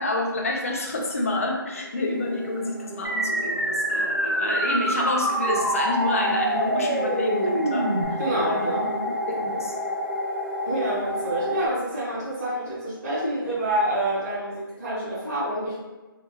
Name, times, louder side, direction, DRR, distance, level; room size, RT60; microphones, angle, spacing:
voice 1, 0.0-8.9 9.3-9.7, left 2 dB, 40° left, 0 dB, 0.4 m, -28 dB
sound 1, 1.7-11.7, equal, 65° right, 0.8 m, -31 dB
sound 2, 3.0-8.0, right 1 dB, 85° right, 0.5 m, -26 dB
voice 2, 8.2-8.8 10.6-15.8, right 1 dB, 45° right, -11 dB, 1.2 m, -27 dB
2.8 x 2.0 x 2.2 m, 1.1 s
figure-of-eight pair, 165°, 12 cm